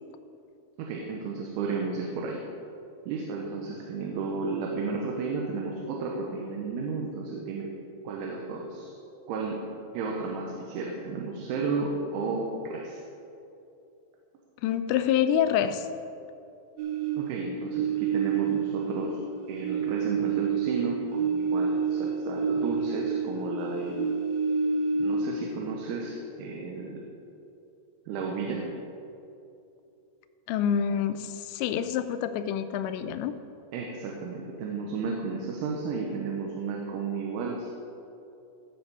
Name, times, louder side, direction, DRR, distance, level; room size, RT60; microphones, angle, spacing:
voice 1, 0.8-2.4 3.1-7.7 8.0-9.0 9.3-9.6 9.9-13.0 17.2-19.2 19.5-24.0 24.9-27.0 28.1-28.6 33.7-37.7, right 4 dB, 85° right, 0 dB, 3.5 m, -33 dB
voice 2, 14.6-15.9 30.5-33.3, left 9 dB, 80° left, 10 dB, 2.7 m, -27 dB
sound 1, 16.8-19.3 19.6-23.5 23.8-25.5, right 6 dB, 70° right, 2.7 m, -28 dB
15.0 x 7.1 x 5.4 m, 2.7 s
omnidirectional pair, 5.3 m